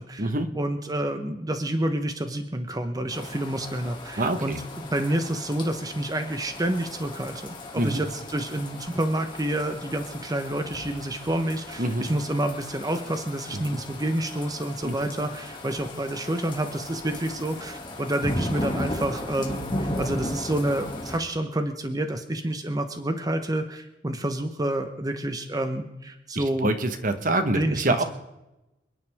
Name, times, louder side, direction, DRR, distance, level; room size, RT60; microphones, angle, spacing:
voice 1, 0.0-26.7 27.5-28.0, right 1 dB, 20° right, 7 dB, 1.0 m, -29 dB
sound 1, 3.1-21.2, left 1 dB, 25° left, 2.3 m, -36 dB
voice 2, 4.2-4.6 7.7-8.0 11.8-12.1 14.8-14.9 26.3-28.0, right 2 dB, 50° right, 8 dB, 1.3 m, -25 dB
28.0 x 10.5 x 3.6 m, 0.96 s
head